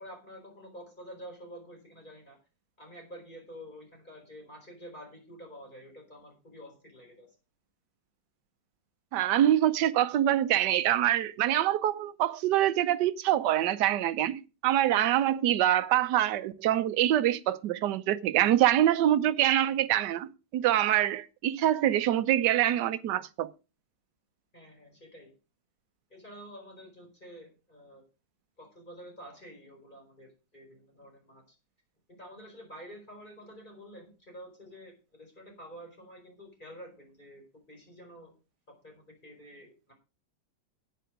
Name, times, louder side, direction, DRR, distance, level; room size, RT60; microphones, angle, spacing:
voice 1, 0.0-2.4 2.8-7.3 24.5-25.3 26.1-28.0 28.6-31.5 32.1-38.3 38.7-39.9, equal, 25° left, 4.9 m, -49 dB
voice 2, 9.1-23.5, right 12 dB, 75° right, 1.3 m, -25 dB
10.0 x 9.2 x 5.0 m
omnidirectional pair, 1.9 m